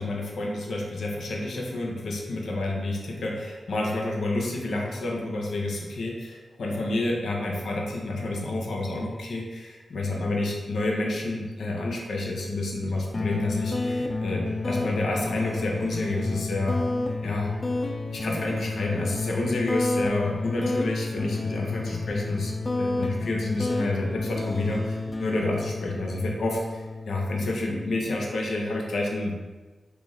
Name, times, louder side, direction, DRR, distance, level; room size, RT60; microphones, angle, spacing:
voice 1, 0.0-16.8 17.2-17.5 18.1-29.4, left 2 dB, 80° left, -1 dB, 0.6 m, -29 dB
sound 1, 13.1-28.2, left 2 dB, 35° left, 0.3 m, -30 dB
3.0 x 2.5 x 3.8 m, 1.3 s
cardioid pair, 60°, 0 cm